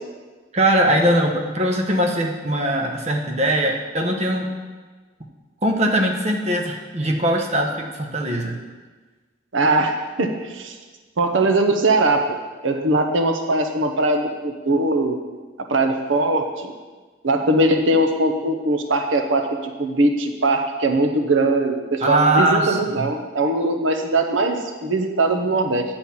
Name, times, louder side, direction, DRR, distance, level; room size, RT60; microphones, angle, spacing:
voice 1, 0.5-4.5 5.6-8.6 22.0-23.0, right 1 dB, 35° right, 2 dB, 0.9 m, -21 dB
voice 2, 9.5-10.8 11.2-12.4 12.6-15.2 15.7-16.7 17.2-25.8, right 2 dB, 90° right, 5 dB, 0.9 m, -20 dB
9.5 x 4.4 x 7.1 m, 1.4 s
head